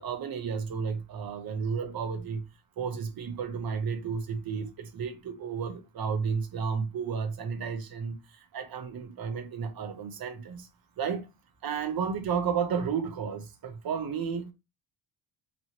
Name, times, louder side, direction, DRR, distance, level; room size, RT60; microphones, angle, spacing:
voice 1, 0.0-2.5 2.8-10.7 11.0-11.3 11.6-14.5, right 6 dB, 55° right, 0.7 m, -32 dB
3.1 x 2.8 x 2.9 m
wide cardioid pair, 165°, 44 cm